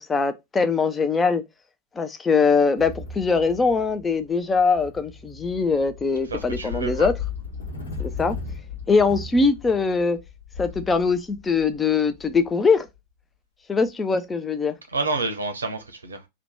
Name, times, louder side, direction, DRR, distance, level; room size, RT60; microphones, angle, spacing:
voice 1, 0.1-1.4 2.0-7.1 8.0-8.4 8.9-10.2 10.6-12.9 13.7-14.7, left 4 dB, 15° left, 0.4 m, -22 dB
sound 1, 2.8-13.0, left 5 dB, 70° left, 1.0 m, -37 dB
voice 2, 6.3-7.1 14.9-16.3, right 3 dB, 75° right, 0.6 m, -29 dB
2.9 x 2.2 x 3.0 m
figure-of-eight pair, 90°, 0 cm